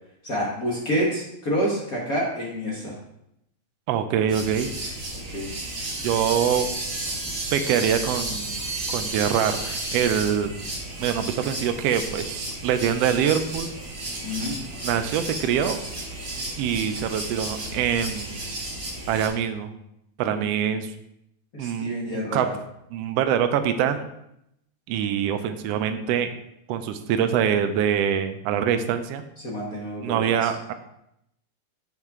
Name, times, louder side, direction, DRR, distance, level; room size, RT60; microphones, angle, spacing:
voice 1, 0.2-3.0 5.3-5.5 14.2-14.6 21.5-22.5 29.4-30.5, equal, 40° left, -4 dB, 1.3 m, -28 dB
voice 2, 3.9-4.7 6.0-6.7 7.5-8.6 8.9-10.5 11.0-13.7 14.8-15.8 16.6-18.4 19.1-19.7 20.2-20.9 21.6-22.5 22.9-24.1 24.9-26.3 26.7-29.2 30.0-30.7, right 8 dB, 85° right, 8 dB, 1.4 m, -24 dB
sound 1, 4.3-19.3, right 2 dB, 55° right, 0.6 m, -33 dB
7.7 x 5.5 x 3.6 m, 0.79 s
omnidirectional pair, 3.3 m